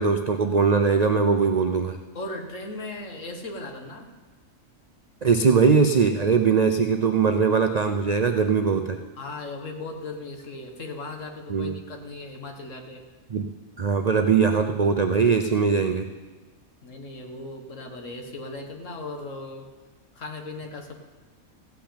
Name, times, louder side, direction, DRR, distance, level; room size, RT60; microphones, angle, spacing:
voice 1, 0.0-2.0 5.2-9.0 11.5-11.7 13.3-13.5 13.8-16.1, right 5 dB, 55° right, 6 dB, 0.4 m, -21 dB
voice 2, 2.1-4.1 9.2-13.0 16.8-19.7 20.1-21.0, left 2 dB, 60° left, 4 dB, 1.7 m, -37 dB
15.5 x 5.9 x 8.5 m, 1.3 s
omnidirectional pair, 1.5 m